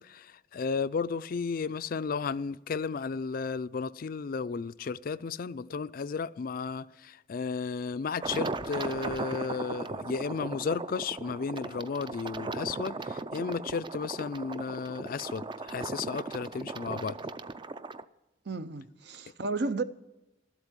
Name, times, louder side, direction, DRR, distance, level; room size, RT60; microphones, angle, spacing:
voice 1, 0.0-17.2, left 5 dB, 50° left, 0.4 m, -34 dB
sound 1, 8.2-18.0, right 3 dB, 25° right, 0.4 m, -37 dB
voice 2, 18.5-19.8, right 3 dB, 65° right, 0.7 m, -33 dB
13.0 x 8.1 x 8.9 m
head